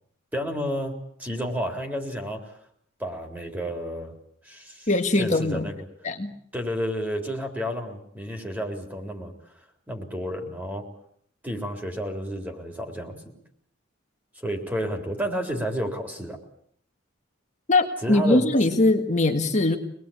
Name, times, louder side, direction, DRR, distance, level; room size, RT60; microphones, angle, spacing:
voice 1, 0.3-0.9 1.2-2.4 3.0-4.1 4.4-5.8 6.5-9.3 9.9-10.9 11.4-13.4 14.4-16.4 18.0-18.5, equal, 10° right, 4 dB, 3.8 m, -31 dB
voice 2, 4.9-5.7 6.0-6.3 17.7-19.8, left 2 dB, 35° left, 3 dB, 1.7 m, -21 dB
25.5 x 20.0 x 8.8 m, 0.67 s
head